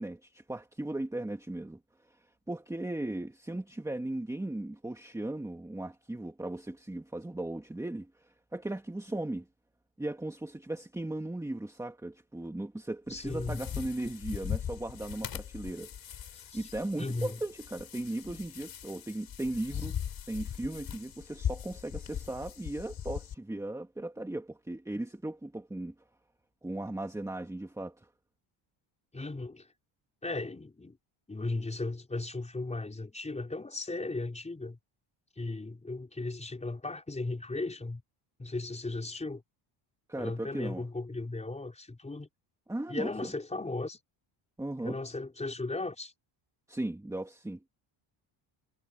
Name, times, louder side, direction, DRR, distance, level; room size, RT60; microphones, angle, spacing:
voice 1, 0.0-1.8 2.1-2.2 2.5-9.5 10.0-15.9 16.3-20.0 20.3-25.9 26.6-28.1 40.1-40.8 42.7-43.3 44.6-45.0 46.7-47.6, right 1 dB, 5° right, 2.1 m, -37 dB
sound 1, 13.1-23.3, left 9 dB, 45° left, 6.2 m, -40 dB
voice 2, 13.1-13.6 16.3-16.7 17.0-17.4 29.1-29.7 30.2-31.0 31.3-34.8 35.4-38.0 38.4-39.4 40.2-42.3 42.9-44.0 44.8-46.1, left 2 dB, 15° left, 4.9 m, -36 dB
cardioid pair, 135°, 49 cm